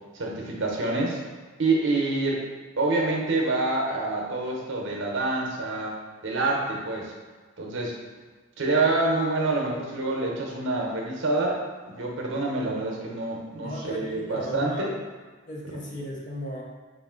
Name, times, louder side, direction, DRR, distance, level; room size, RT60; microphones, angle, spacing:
voice 1, 0.1-1.2 1.6-2.4 2.8-7.1 7.6-8.0 8.6-11.6 11.9-14.9, right 2 dB, 60° right, -1 dB, 0.7 m, -27 dB
voice 2, 13.6-14.9 15.5-16.6, equal, 40° left, -3 dB, 0.7 m, -35 dB
3.9 x 2.5 x 3.7 m, 1.4 s
head